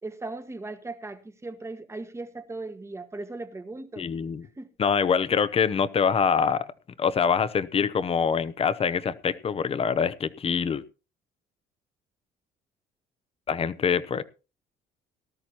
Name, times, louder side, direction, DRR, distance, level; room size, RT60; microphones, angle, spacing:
voice 1, 0.0-4.1 4.6-4.7, right 2 dB, 15° right, 1.3 m, -38 dB
voice 2, 4.0-4.4 4.8-6.7 7.0-10.8 13.5-14.2, left 6 dB, 35° left, 0.8 m, -25 dB
18.5 x 13.0 x 2.9 m
cardioid pair, 110°, 17 cm